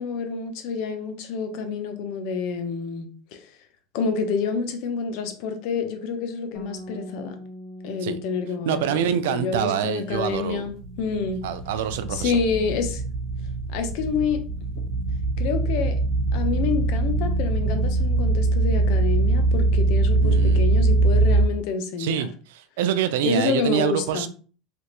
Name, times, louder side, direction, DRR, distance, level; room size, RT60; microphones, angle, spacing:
voice 1, 0.0-3.5 3.9-7.4 7.8-11.4 12.1-13.0 13.7-14.4 15.4-16.0 16.3-22.3 23.2-24.3, left 5 dB, 65° left, 0.7 m, -28 dB
Bass guitar, 6.5-12.8, equal, 40° left, 1.1 m, -44 dB
voice 2, 8.7-10.7 11.4-12.4 20.2-20.6 22.0-24.3, right 9 dB, 85° right, 0.4 m, -26 dB
sound 1, 10.1-21.5, right 2 dB, 40° right, 1.3 m, -22 dB
3.4 x 3.0 x 2.9 m
supercardioid pair, 130°, 0 cm